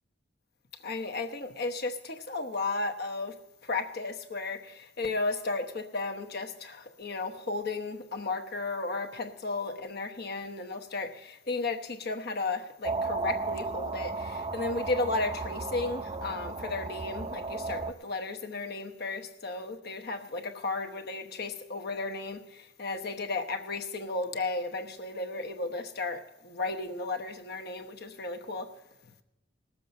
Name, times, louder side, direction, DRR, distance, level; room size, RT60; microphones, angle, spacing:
voice 1, 0.8-3.4 3.6-28.7, left 3 dB, 55° left, 1.0 m, -34 dB
sound 1, 12.8-17.9, right 3 dB, 25° right, 0.6 m, -34 dB
19.0 x 7.4 x 5.3 m
head